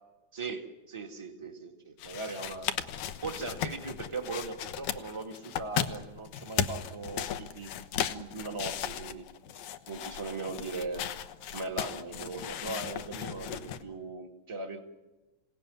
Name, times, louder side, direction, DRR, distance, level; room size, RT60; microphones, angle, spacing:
voice 1, 0.3-2.7 3.2-9.2 9.9-11.0 11.5-14.8, right 3 dB, 10° right, 4 dB, 1.6 m, -39 dB
sound 1, 2.0-13.8, left 9 dB, 80° left, 2.5 m, -36 dB
27.5 x 18.0 x 9.7 m, 1.1 s
omnidirectional pair, 3.4 m